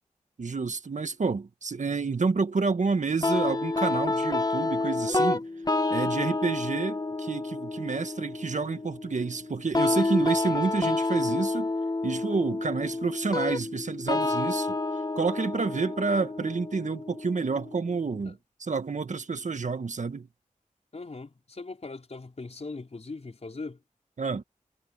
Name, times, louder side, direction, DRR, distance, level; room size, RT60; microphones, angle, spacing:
voice 1, 0.4-5.4 5.9-11.7 12.0-14.8 15.1-20.3 24.2-24.4, right 4 dB, 65° right, 1.5 m, -29 dB
sound 1, 3.2-18.2, left 2 dB, 30° left, 1.2 m, -29 dB
voice 2, 20.9-23.8, left 3 dB, 50° left, 4.6 m, -40 dB
wide cardioid pair, 70°, 14 cm